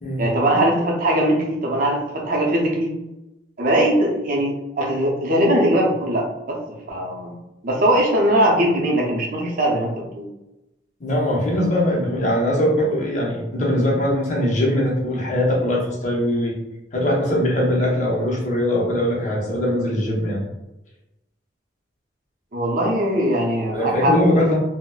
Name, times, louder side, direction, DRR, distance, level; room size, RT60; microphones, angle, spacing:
voice 1, 0.2-2.9 3.6-6.6 6.9-7.3 7.6-10.3 22.5-24.4, right 1 dB, 50° right, -1 dB, 0.6 m, -20 dB
voice 2, 11.0-16.6 16.9-20.4 23.7-24.6, left 1 dB, 40° left, -3 dB, 0.7 m, -21 dB
3.8 x 2.0 x 2.2 m, 0.94 s
head